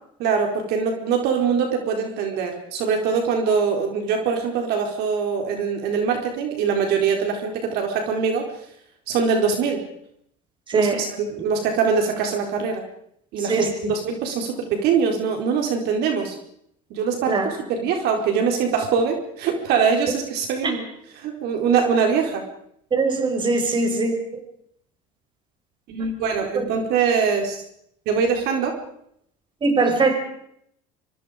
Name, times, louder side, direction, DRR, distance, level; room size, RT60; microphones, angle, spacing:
voice 1, 0.2-8.6 9.1-9.8 10.7-12.8 13.3-16.4 16.9-20.8 21.2-22.5 25.9-27.6 28.1-28.8, right 6 dB, 65° right, 3 dB, 4.4 m, -23 dB
voice 2, 10.7-11.0 13.4-13.9 17.3-17.5 20.6-20.7 22.9-24.2 26.5-26.6 29.6-30.2, right 3 dB, 25° right, 5 dB, 5.4 m, -21 dB
25.0 x 25.0 x 5.1 m, 0.73 s
cardioid pair, 120°, 18 cm